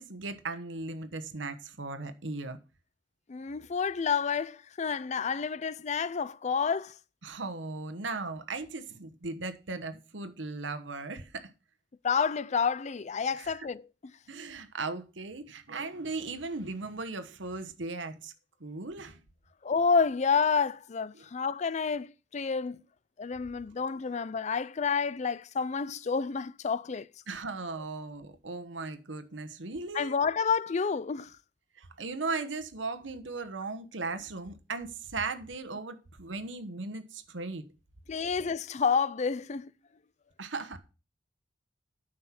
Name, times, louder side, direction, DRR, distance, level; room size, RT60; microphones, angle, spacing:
voice 1, 0.0-2.6 7.2-11.5 13.4-13.5 14.3-18.3 18.6-19.2 21.1-21.2 27.3-30.1 31.8-37.7 40.4-40.8, right 3 dB, 90° right, 1.2 m, -37 dB
voice 2, 3.3-7.0 12.0-13.8 19.6-22.8 23.2-27.1 29.9-31.3 38.1-39.7, left 5 dB, 40° left, 0.4 m, -29 dB
9.7 x 6.5 x 5.8 m
head